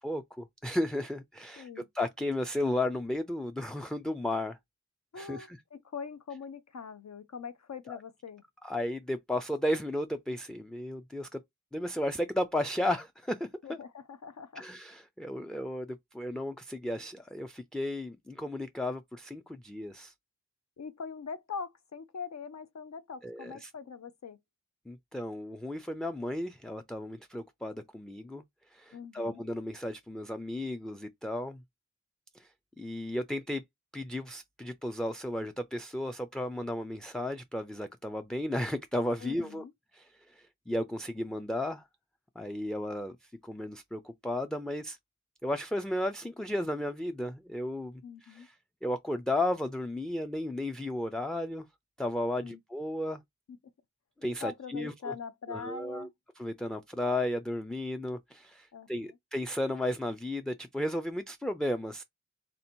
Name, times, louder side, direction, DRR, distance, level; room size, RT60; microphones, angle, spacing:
voice 1, 0.0-4.6 5.2-5.6 7.9-8.0 8.6-11.4 11.7-13.8 14.6-20.1 23.2-23.7 24.9-28.4 28.7-31.6 32.3-32.5 32.8-33.6 33.9-39.6 39.9-41.8 42.4-45.0 45.4-48.5 48.8-51.6 52.0-53.2 54.2-55.1 55.5-56.1 56.4-62.0, left 1 dB, ahead, 0.3 m, -34 dB
voice 2, 1.6-1.9 5.1-8.4 13.6-14.6 20.8-24.4 28.9-29.4 39.2-39.7 48.0-48.5 52.4-52.6 53.5-53.6 54.4-56.1 58.7-59.2, left 5 dB, 65° left, 0.6 m, -42 dB
3.3 x 2.7 x 4.3 m
wide cardioid pair, 85°, 30 cm